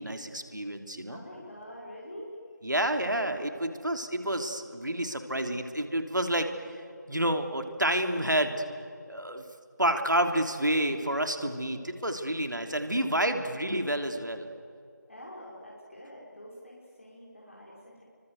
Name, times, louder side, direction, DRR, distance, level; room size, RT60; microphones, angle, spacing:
voice 1, 0.0-1.2 2.6-6.5 7.1-8.7 9.1-9.4 9.8-14.5, right 1 dB, 80° right, 6 dB, 3.4 m, -29 dB
voice 2, 1.1-2.4 15.1-18.0, equal, 45° left, -4 dB, 5.8 m, -46 dB
29.0 x 25.0 x 8.2 m, 2.4 s
figure-of-eight pair, 170°, 10 cm